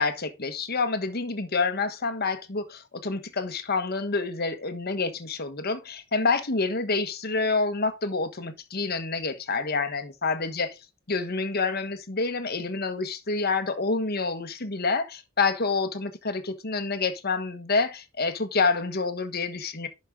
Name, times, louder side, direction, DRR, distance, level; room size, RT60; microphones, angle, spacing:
voice 1, 0.0-10.7 11.1-19.9, left 4 dB, 50° left, 1.4 m, -28 dB
11.0 x 5.5 x 3.8 m
head